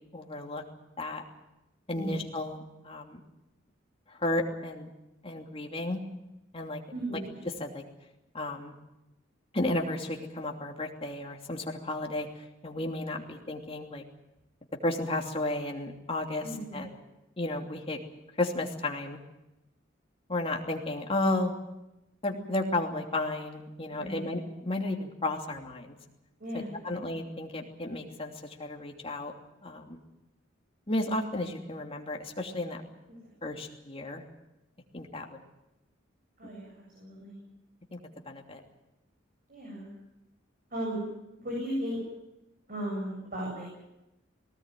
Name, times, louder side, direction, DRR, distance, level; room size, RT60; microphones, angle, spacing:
voice 1, 0.1-0.6 1.0-1.2 1.9-3.2 4.1-4.9 5.2-6.0 6.5-6.8 7.6-7.8 8.3-8.8 9.5-12.3 12.6-14.0 14.8-16.4 16.7-16.9 17.4-18.0 18.4-19.2 20.3-21.5 22.2-26.0 26.8-28.3 28.6-29.3 29.6-30.0 30.9-32.8 33.4-34.2 34.9-35.4 36.4-36.5 37.9-38.0 38.2-38.6, left 2 dB, 30° left, 2 dB, 2.9 m, -33 dB
voice 2, 6.9-7.3 16.4-16.9 23.9-24.2 26.4-27.1 33.4-33.5 36.4-37.4 39.5-39.9 40.7-41.0 41.3-42.0 42.7-43.7, equal, 50° right, -2 dB, 7.7 m, -36 dB
19.5 x 18.5 x 9.2 m, 0.93 s
head